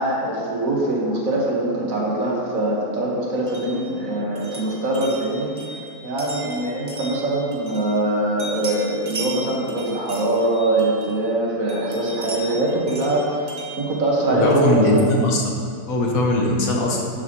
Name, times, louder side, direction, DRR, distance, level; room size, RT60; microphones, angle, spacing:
voice 1, 0.0-5.5 6.0-13.5 13.8-15.1, right 1 dB, 65° right, -3 dB, 1.9 m, -22 dB
sound 1, 3.5-8.1 8.4-11.3 11.7-14.7, right 2 dB, 35° right, 1.4 m, -37 dB
voice 2, 14.3-15.4 15.9-17.0, left 1 dB, 70° left, -1 dB, 1.6 m, -20 dB
11.5 x 7.5 x 3.0 m, 2.5 s
omnidirectional pair, 1.6 m